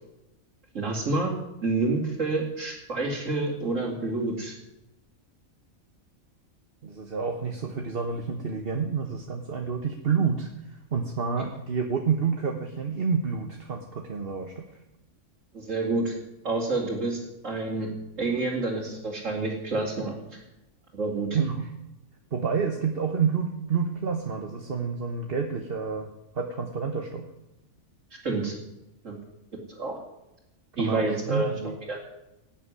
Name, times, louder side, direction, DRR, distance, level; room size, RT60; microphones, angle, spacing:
voice 1, 0.7-1.3 1.6-4.5 15.5-16.1 16.4-17.2 17.4-17.9 18.2-20.4 20.9-21.3 28.2-28.5 29.0-29.2 29.7-30.0 30.8-31.5 31.9-32.0, right 2 dB, 65° right, -4 dB, 3.1 m, -28 dB
voice 2, 6.8-14.6 21.3-21.7 22.3-26.1 26.3-27.2 30.8-31.7, right 6 dB, 45° right, 3 dB, 1.4 m, -29 dB
18.5 x 7.3 x 9.6 m, 0.93 s
omnidirectional pair, 1.4 m